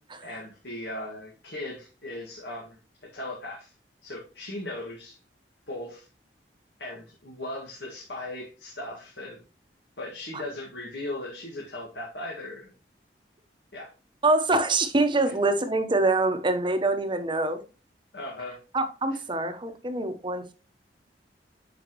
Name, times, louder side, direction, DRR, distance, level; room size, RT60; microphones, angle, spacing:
voice 1, 0.2-3.7 4.0-5.2 5.7-6.1 6.8-9.4 10.0-12.7 13.7-13.9 15.2-15.3 18.1-18.6, left 1 dB, 75° left, -3 dB, 2.0 m, -38 dB
voice 2, 14.2-17.6 18.7-20.5, right 2 dB, 30° right, 8 dB, 1.0 m, -25 dB
8.0 x 5.8 x 3.0 m, 0.32 s
head